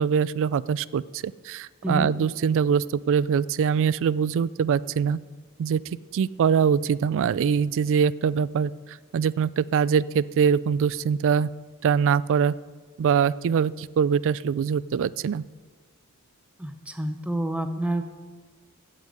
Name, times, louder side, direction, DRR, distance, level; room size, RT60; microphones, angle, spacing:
voice 1, 0.0-5.2 5.6-5.8 6.1-11.5 11.8-12.5 13.0-15.4, right 7 dB, 60° right, 20 dB, 0.3 m, -23 dB
voice 2, 1.8-2.2 16.6-18.1, right 1 dB, 5° right, 8 dB, 0.8 m, -28 dB
15.5 x 5.4 x 7.7 m, 1.5 s
head